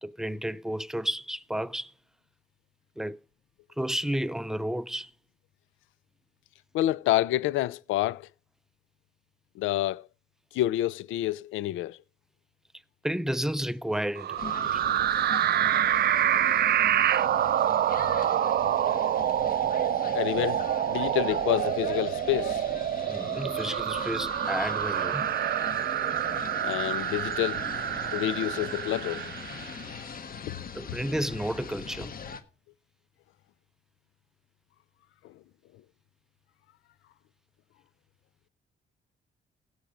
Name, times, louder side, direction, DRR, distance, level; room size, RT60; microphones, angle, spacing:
voice 1, 0.0-1.9 3.0-3.2 3.8-5.1 13.0-14.8 23.1-25.2 30.7-32.1, equal, ahead, 0.5 m, -32 dB
voice 2, 6.7-8.3 9.6-10.0 10.5-12.0 20.1-22.6 26.6-27.6 28.1-29.3 30.4-30.6 35.2-35.3, left 15 dB, 90° left, 0.5 m, -28 dB
sound 1, 14.2-29.8, right 11 dB, 55° right, 0.5 m, -27 dB
sound 2, 14.4-32.4, left 6 dB, 45° left, 1.3 m, -41 dB
16.0 x 6.3 x 5.1 m
cardioid pair, 90°, 20 cm